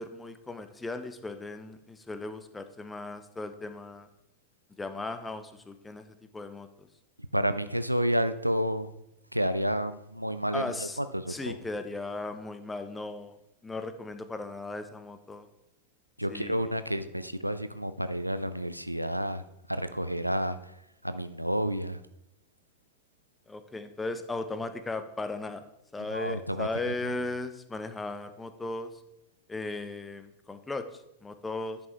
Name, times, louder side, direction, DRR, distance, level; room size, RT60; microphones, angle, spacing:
voice 1, 0.0-4.1 4.8-6.7 10.5-11.0 11.3-15.5 16.3-16.7 23.5-25.6 25.9-28.9 29.5-30.9 31.2-31.8, left 2 dB, 10° left, 10 dB, 0.6 m, -37 dB
voice 2, 7.3-8.9 9.3-11.5 16.2-19.4 19.7-20.7 21.0-22.0 26.1-27.1, equal, 90° right, 12 dB, 0.4 m, -30 dB
10.5 x 5.4 x 3.4 m, 0.87 s
figure-of-eight pair, 90°, 0 cm